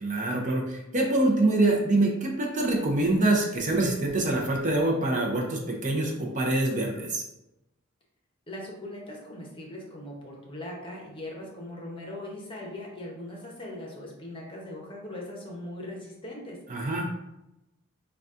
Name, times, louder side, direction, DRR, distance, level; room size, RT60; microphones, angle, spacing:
voice 1, 0.0-7.2 16.7-17.1, right 2 dB, 35° right, 0 dB, 0.6 m, -25 dB
voice 2, 8.5-17.2, left 1 dB, 25° left, -2 dB, 0.8 m, -40 dB
3.9 x 2.3 x 3.6 m, 0.92 s
head